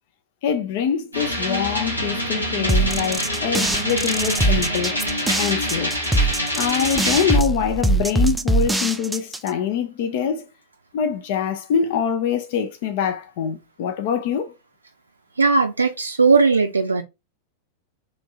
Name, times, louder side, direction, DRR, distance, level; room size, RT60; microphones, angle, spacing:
voice 1, 0.4-5.0 5.4-5.9 6.6-10.5 10.9-14.5, left 7 dB, 50° left, 0.5 m, -24 dB
sound 1, 1.1-7.4, equal, 85° left, 1.2 m, -25 dB
sound 2, 2.7-9.5, right 2 dB, 5° right, 0.4 m, -22 dB
voice 2, 15.4-17.0, right 4 dB, 80° right, 0.4 m, -18 dB
3.1 x 2.6 x 3.5 m
figure-of-eight pair, 90°, 0 cm